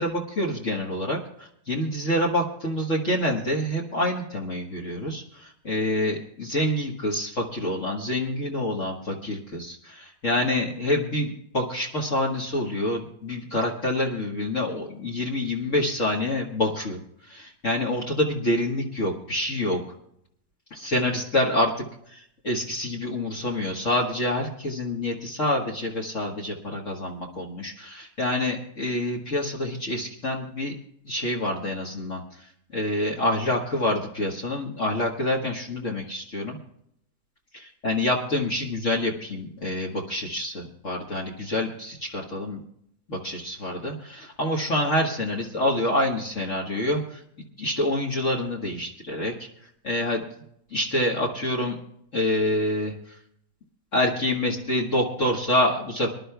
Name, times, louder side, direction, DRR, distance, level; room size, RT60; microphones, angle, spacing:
voice 1, 0.0-17.0 17.3-19.8 20.7-30.7 31.0-32.5 32.7-36.6 37.5-42.6 43.1-47.2 47.6-49.5 49.8-50.2 50.7-51.8 52.1-53.2 53.9-56.1, left 1 dB, 45° left, -2 dB, 1.7 m, -27 dB
25.5 x 11.5 x 2.3 m, 0.71 s
omnidirectional pair, 2.0 m